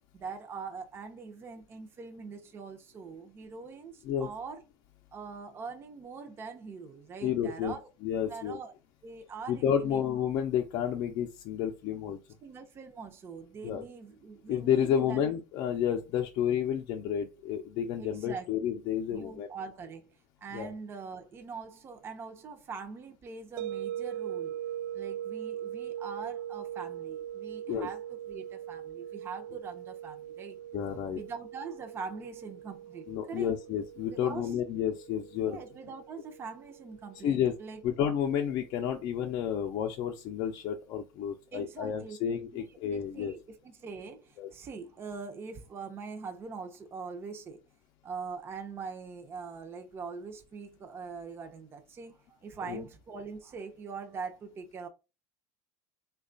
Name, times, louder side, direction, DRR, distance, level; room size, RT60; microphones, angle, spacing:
voice 1, 0.1-4.6 5.1-7.9 8.3-8.7 9.0-10.0 12.4-15.2 18.0-18.5 19.1-24.6 24.9-30.6 31.1-33.6 34.1-34.5 35.4-37.8 41.5-42.2 42.5-42.6 42.9-47.6 48.0-54.9, right 5 dB, 25° right, 0.6 m, -43 dB
voice 2, 7.2-7.7 8.0-8.6 9.5-12.2 13.6-13.8 14.5-19.5 20.5-20.7 27.7-27.9 30.7-31.2 33.1-35.6 37.2-37.5 37.8-43.3 44.4-44.5 52.7-52.8, left 9 dB, 50° left, 0.5 m, -30 dB
sound 1, 23.6-38.5, right 11 dB, 80° right, 0.4 m, -41 dB
3.2 x 2.3 x 3.8 m
cardioid pair, 145°, 9 cm